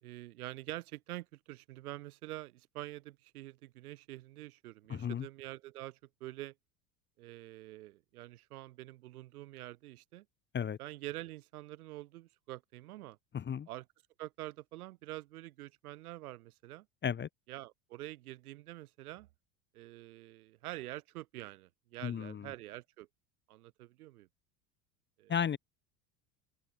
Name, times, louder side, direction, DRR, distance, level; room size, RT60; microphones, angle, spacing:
voice 1, 0.0-6.5 7.2-10.2 10.8-13.2 13.7-13.8 14.2-16.9 17.5-19.3 19.7-23.1 23.5-24.3 25.2-25.3, right 16 dB, 70° right, 3.1 m, -46 dB
voice 2, 4.9-5.3 10.5-10.8 13.3-13.7 17.0-17.3 22.0-22.5 25.3-25.6, left 8 dB, 25° left, 1.0 m, -34 dB
hypercardioid pair, 75°, 45 cm